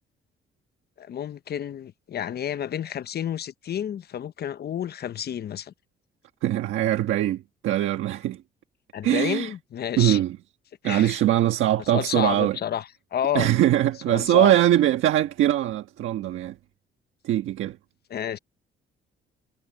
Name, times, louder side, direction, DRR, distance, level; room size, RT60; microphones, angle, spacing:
voice 1, 1.0-5.7 8.9-10.2 10.8-11.2 11.9-13.5 14.1-14.5 18.1-18.4, left 9 dB, 55° left, 0.8 m, -30 dB
voice 2, 6.4-8.4 9.0-9.5 10.0-10.4 10.8-12.6 13.3-16.5 17.2-17.8, right 13 dB, 80° right, 1.4 m, -22 dB
cardioid pair, 90°, 20 cm